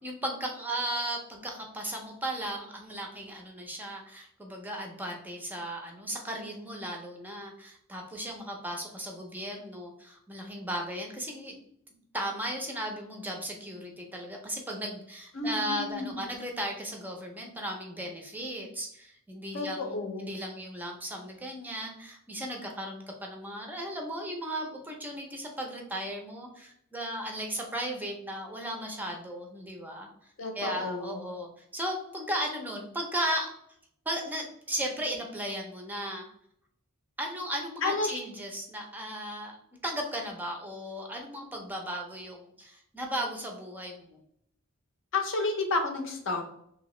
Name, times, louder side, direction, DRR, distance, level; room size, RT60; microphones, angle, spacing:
voice 1, 0.0-11.6 12.1-33.5 34.1-36.3 37.2-39.6 39.8-44.2, right 1 dB, 10° right, 1 dB, 0.5 m, -36 dB
voice 2, 15.3-16.3 19.5-20.3 30.4-31.3 37.8-38.2 45.1-46.4, left 3 dB, 60° left, 4 dB, 0.6 m, -31 dB
2.8 x 2.8 x 3.0 m, 0.70 s
head